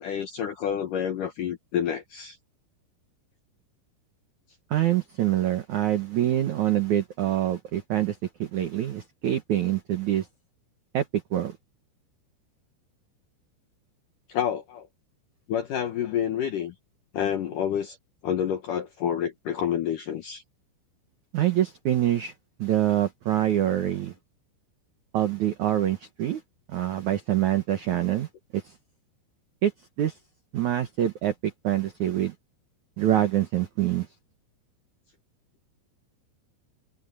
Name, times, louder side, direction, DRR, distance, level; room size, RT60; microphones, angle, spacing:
voice 1, 0.0-2.4 14.3-14.9 15.5-16.7 17.1-18.0 18.2-20.4, left 9 dB, 70° left, 2.0 m, -28 dB
voice 2, 4.7-10.3 10.9-11.6 21.3-22.3 22.6-24.1 25.1-26.4 26.7-28.3 28.5-28.7 29.6-29.7 30.0-30.2 30.5-32.3 33.0-34.1, right 12 dB, 80° right, 1.7 m, -25 dB
omnidirectional pair, 5.4 m